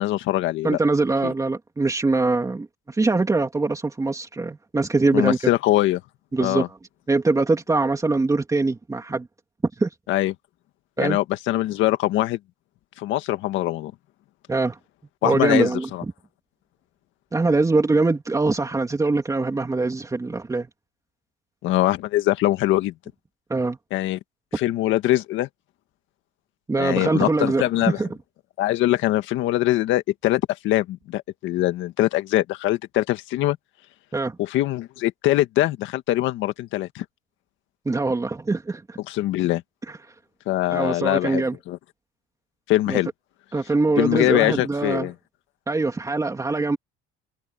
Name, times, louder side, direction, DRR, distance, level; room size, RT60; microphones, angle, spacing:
voice 1, 0.0-0.8 1.2-1.3 5.1-6.0 6.4-6.7 10.1-10.3 11.0-12.4 13.0-13.9 15.2-16.0 21.6-22.9 23.9-24.2 24.6-25.5 26.8-28.0 28.6-33.6 34.4-37.1 39.1-39.6 40.5-41.8 42.7-43.1 44.0-45.1, left 15 dB, 70° left, 1.8 m, -23 dB
voice 2, 0.6-5.5 6.3-6.7 7.1-9.3 9.8-9.9 11.0-11.2 14.5-14.8 15.2-16.1 17.3-20.7 23.5-23.8 26.7-28.1 34.1-34.4 37.8-39.0 40.7-41.6 42.9-43.0 43.5-45.1 45.7-46.8, right 3 dB, 15° right, 3.1 m, -23 dB
cardioid pair, 115°, 21 cm